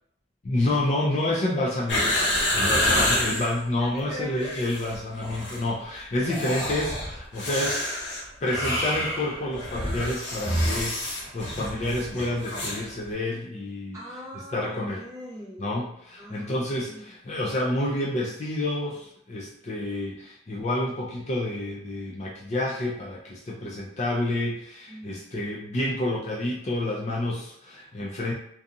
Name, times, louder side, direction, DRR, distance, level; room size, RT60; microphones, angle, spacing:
voice 1, 0.4-2.2 2.5-7.9 8.4-14.0 14.5-15.0 15.6-28.3, left 1 dB, 35° left, -4 dB, 0.4 m, -29 dB
sound 1, 1.9-3.5 4.3-5.0 5.2-5.6 6.2-12.8 13.1-13.2, left 1 dB, 65° left, 0.8 m, -27 dB
voice 2, 2.8-3.1 3.8-4.5 13.9-15.8 16.2-16.6 16.8-17.1 24.9-25.3, equal, 15° right, -7 dB, 0.9 m, -40 dB
2.7 x 2.3 x 2.5 m, 0.71 s
head